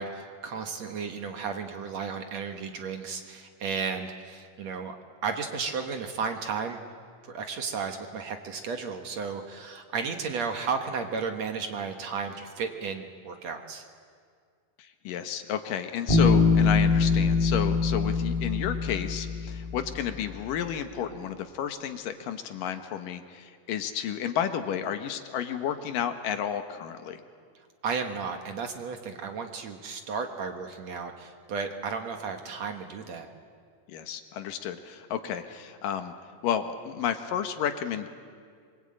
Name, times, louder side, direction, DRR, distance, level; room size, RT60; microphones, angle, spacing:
voice 1, 0.0-5.0 5.2-6.8 7.3-13.9 27.8-33.3, right 5 dB, 55° right, 5 dB, 2.4 m, -33 dB
voice 2, 14.8-27.2 33.9-36.1 36.4-38.1, left 9 dB, 75° left, 8 dB, 2.8 m, -32 dB
Bass guitar, 16.1-19.8, left 4 dB, 10° left, 4.0 m, -23 dB
25.0 x 23.5 x 8.8 m, 2.1 s
omnidirectional pair, 4.0 m